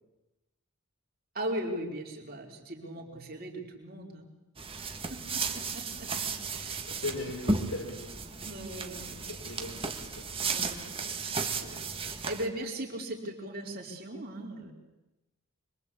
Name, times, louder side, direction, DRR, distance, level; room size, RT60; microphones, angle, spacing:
voice 1, 1.3-4.3 5.1-6.8 8.4-9.2 10.4-10.8 11.6-14.7, right 1 dB, 40° right, 1 dB, 4.4 m, -39 dB
sound 1, 4.6-12.5, right 4 dB, 25° right, 1.8 m, -34 dB
voice 2, 6.9-8.1 9.3-10.3, left 2 dB, 75° left, -2 dB, 4.2 m, -39 dB
26.0 x 23.0 x 8.5 m, 1.0 s
head